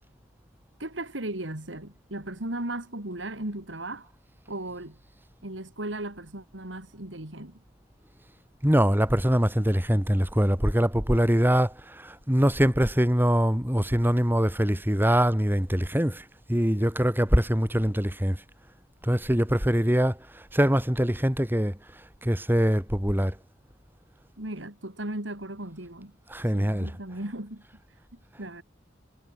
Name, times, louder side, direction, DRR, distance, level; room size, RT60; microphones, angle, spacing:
voice 1, 0.8-4.1 4.5-5.0 5.4-7.6 24.4-26.1 26.5-27.6 28.4-28.6, right 1 dB, 85° right, 4.1 m, -36 dB
voice 2, 8.6-18.4 19.0-21.8 22.2-23.3 26.3-26.9, equal, 10° right, 3.9 m, -23 dB
head